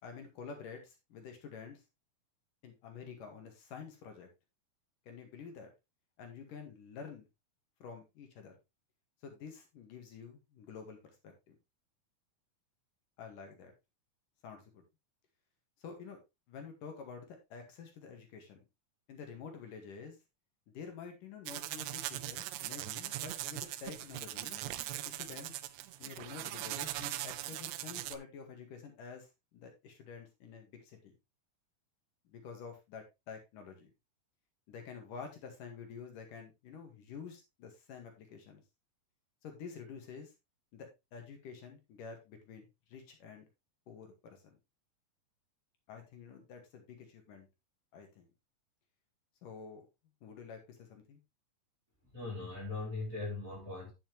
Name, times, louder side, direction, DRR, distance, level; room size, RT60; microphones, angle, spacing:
voice 1, 0.0-1.8 2.6-4.3 5.1-5.7 6.2-7.3 7.8-8.5 9.2-11.6 13.2-13.7 14.4-14.8 15.8-16.2 16.5-18.6 19.1-20.2 20.7-24.8 25.0-25.6 26.0-31.1 32.3-33.9 34.7-38.6 39.4-40.3 40.7-43.5 43.9-44.6 45.9-47.5 47.9-48.3 49.4-49.9 50.2-51.2, left 6 dB, 70° left, 3.4 m, -49 dB
sound 1, 21.4-28.2, right 14 dB, 85° right, 1.6 m, -40 dB
voice 2, 52.1-53.9, left 3 dB, 20° right, 3.8 m, -39 dB
9.5 x 7.1 x 3.3 m
omnidirectional pair, 3.9 m